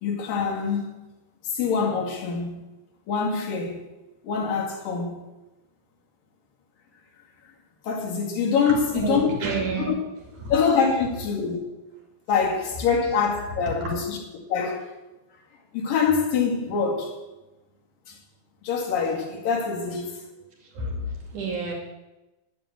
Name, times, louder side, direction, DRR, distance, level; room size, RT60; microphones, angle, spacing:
voice 1, 0.0-1.0 1.5-2.6 3.1-3.8 4.2-5.2 7.8-9.3 9.9-10.0 10.5-11.6 12.3-14.2 14.5-14.9 15.7-17.1 18.1-18.2 18.6-20.2, left 5 dB, 70° left, 3.8 m, -24 dB
voice 2, 8.7-10.0 10.4-10.5 13.7-13.9 20.6-21.7, right 3 dB, 60° right, 3.9 m, -30 dB
11.0 x 9.0 x 8.6 m
omnidirectional pair, 4.2 m